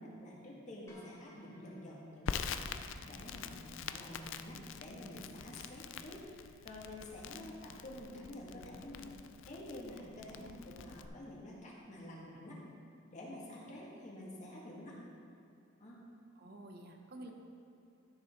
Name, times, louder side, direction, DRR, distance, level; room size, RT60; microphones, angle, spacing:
voice 1, 0.0-9.1 9.4-12.5 13.1-15.0 15.8-16.0, left 1 dB, 35° left, -5 dB, 2.0 m, -49 dB
sound 1, 0.9-3.2, left 1 dB, 15° left, 1.4 m, -63 dB
Crackle, 2.3-11.1, left 6 dB, 65° left, 0.4 m, -45 dB
voice 2, 16.4-17.3, right 1 dB, 50° right, 3 dB, 0.8 m, -52 dB
12.5 x 6.4 x 3.8 m, 2.5 s
head